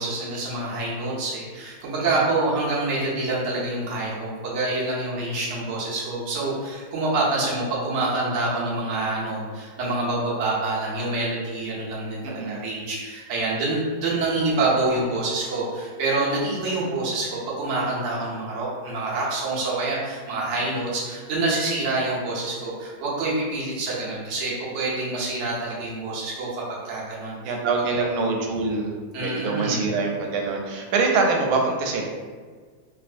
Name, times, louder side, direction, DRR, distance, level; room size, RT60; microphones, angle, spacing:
voice 1, 0.0-27.5 27.9-28.0 29.1-29.8, right 2 dB, 55° right, -6 dB, 0.8 m, -26 dB
voice 2, 12.2-12.6 27.4-28.9 29.2-32.0, right 4 dB, 90° right, 1 dB, 1.4 m, -24 dB
3.4 x 2.5 x 2.4 m, 1.5 s
omnidirectional pair, 2.2 m